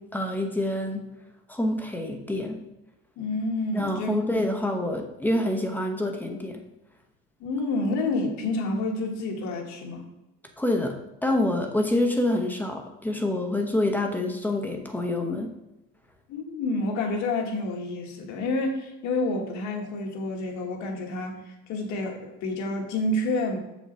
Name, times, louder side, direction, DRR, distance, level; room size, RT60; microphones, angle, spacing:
voice 1, 0.1-1.0 1.5-2.6 3.7-6.6 10.6-15.5, left 1 dB, 5° left, 3 dB, 0.9 m, -27 dB
voice 2, 3.2-4.2 7.4-10.0 16.3-21.4 21.7-23.6, left 2 dB, 75° left, 2 dB, 1.7 m, -29 dB
6.9 x 6.1 x 4.3 m, 0.92 s
cardioid pair, 145°, 29 cm